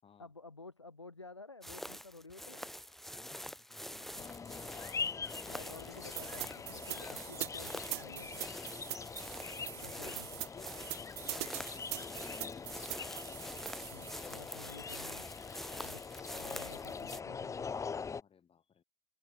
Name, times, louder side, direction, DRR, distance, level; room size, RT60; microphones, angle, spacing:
voice 1, 0.2-2.7 4.0-4.2 5.5-8.5 9.7-10.3 13.9-15.3 15.7-16.0 16.3-17.7, left 3 dB, 90° left, 5.6 m, -52 dB
sound 1, 1.6-17.2, equal, ahead, 6.0 m, -47 dB
voice 2, 3.1-4.9 9.9-10.2 10.5-12.8 18.2-18.8, left 7 dB, 40° left, 4.8 m, -60 dB
sound 2, 4.2-18.2, left 5 dB, 20° left, 0.4 m, -43 dB
sound 3, 6.2-14.2, right 21 dB, 70° right, 0.6 m, -43 dB
open air
figure-of-eight pair, 50°, 14 cm